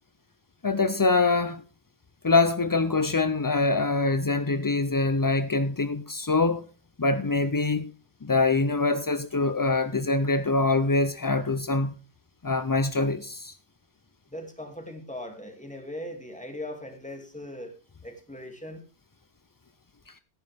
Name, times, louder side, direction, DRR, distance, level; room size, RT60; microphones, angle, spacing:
voice 1, 0.6-1.6 2.2-6.6 7.0-7.9 8.2-11.9 12.4-13.6, left 3 dB, 35° left, 0.3 m, -24 dB
voice 2, 14.3-17.7 18.0-18.8, left 1 dB, 5° left, 2.4 m, -39 dB
16.0 x 9.7 x 3.5 m
omnidirectional pair, 1.1 m